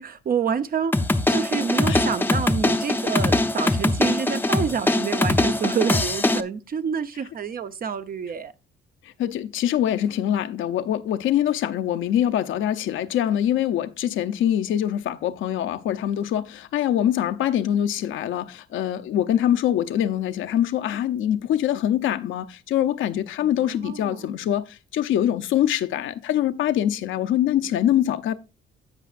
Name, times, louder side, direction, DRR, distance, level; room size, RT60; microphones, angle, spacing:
voice 1, 0.0-8.5 23.4-24.3, right 6 dB, 45° right, 0.8 m, -28 dB
sound 1, 0.9-6.4, left 2 dB, 10° left, 0.6 m, -22 dB
voice 2, 9.0-28.3, left 11 dB, 75° left, 0.7 m, -24 dB
16.0 x 5.6 x 2.5 m
cardioid pair, 90°, 20 cm